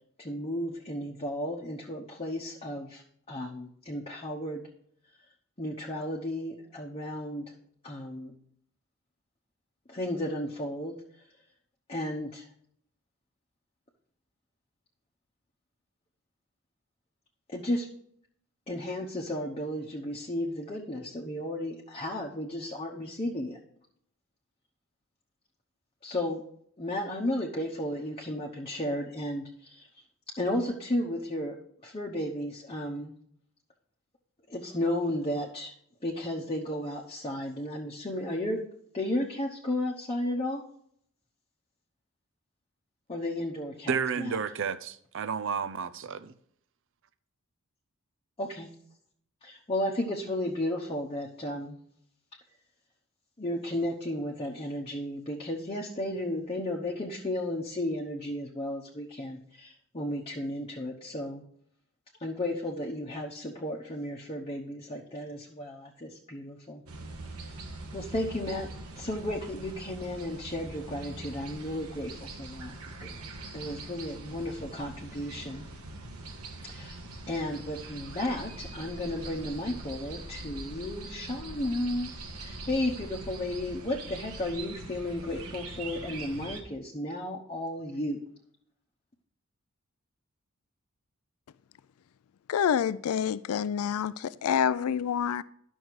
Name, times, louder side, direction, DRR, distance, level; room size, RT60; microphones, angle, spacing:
voice 1, 0.2-4.7 5.6-7.6 7.8-8.3 9.9-10.9 11.9-12.4 17.5-17.9 18.7-23.6 26.0-26.4 26.8-29.9 30.4-31.6 31.8-33.1 34.5-35.7 36.0-38.6 38.9-40.6 43.1-44.4 48.4-48.7 49.4-51.8 53.4-61.4 62.2-66.8 67.4-67.5 67.9-68.7 68.9-72.7 73.0-73.1 73.5-75.6 76.6-77.0 77.3-82.1 82.4-88.2, left 1 dB, 25° left, 1.0 m, -33 dB
voice 2, 43.9-46.3, right 6 dB, 60° right, 0.6 m, -31 dB
sound 1, 66.9-86.6, right 2 dB, 80° right, 1.4 m, -43 dB
voice 3, 92.5-95.4, left 8 dB, 75° left, 0.4 m, -27 dB
11.0 x 6.3 x 4.7 m
head